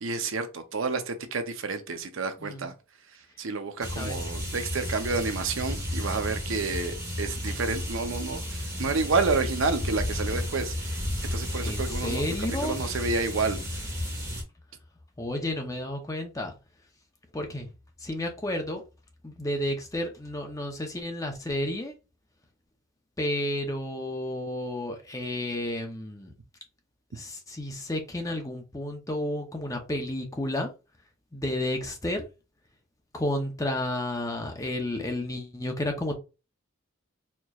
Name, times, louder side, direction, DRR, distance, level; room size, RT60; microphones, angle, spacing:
voice 1, 0.0-2.7 3.4-8.4 8.8-11.0 11.3-12.4 12.6-13.6, right 4 dB, 65° right, 0.6 m, -29 dB
sound 1, 3.8-14.4, left 1 dB, 15° right, 1.3 m, -33 dB
voice 2, 11.6-12.8 15.2-16.5 17.3-17.7 18.0-18.8 19.2-21.9 23.2-26.3 27.1-30.7 31.3-32.3 33.1-36.1, left 1 dB, 15° left, 0.6 m, -31 dB
4.4 x 2.9 x 2.3 m
head